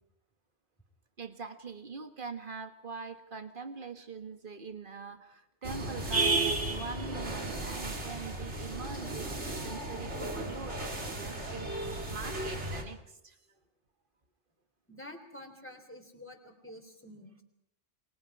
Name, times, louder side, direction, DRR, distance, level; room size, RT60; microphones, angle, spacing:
voice 1, 1.2-13.4, right 5 dB, 50° right, 8 dB, 1.9 m, -43 dB
sound 1, 5.6-12.8, right 2 dB, 80° right, 3.1 m, -34 dB
voice 2, 14.9-17.4, left 1 dB, 10° left, 4 dB, 3.5 m, -49 dB
28.5 x 24.0 x 4.9 m, 0.79 s
omnidirectional pair, 1.1 m